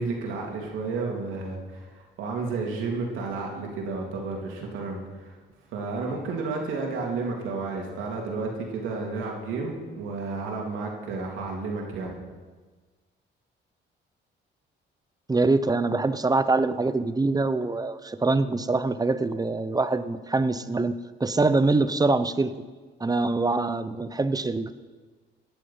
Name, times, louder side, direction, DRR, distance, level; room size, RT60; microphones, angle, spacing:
voice 1, 0.0-5.4 5.7-12.2, right 3 dB, 90° right, 0 dB, 3.0 m, -32 dB
voice 2, 15.3-22.5 23.0-24.7, right 3 dB, 20° right, 13 dB, 0.7 m, -24 dB
17.0 x 10.5 x 5.7 m, 1.4 s
cardioid pair, 90°, 20 cm